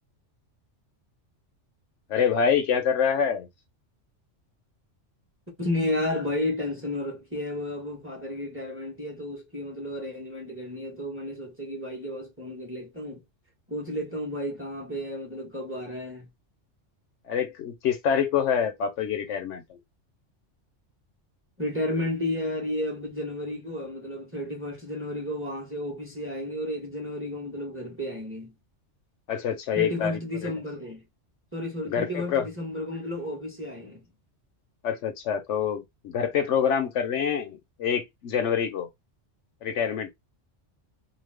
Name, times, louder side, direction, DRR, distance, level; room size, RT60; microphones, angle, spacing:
voice 1, 2.1-3.5 17.3-19.8 29.3-30.5 31.8-32.5 34.8-38.9 39.6-40.1, left 7 dB, 75° left, 0.9 m, -26 dB
voice 2, 5.6-13.2 13.7-16.3 21.6-28.5 29.8-31.0 31.5-34.0, left 1 dB, 10° right, 0.9 m, -32 dB
2.5 x 2.2 x 3.3 m
omnidirectional pair, 1.3 m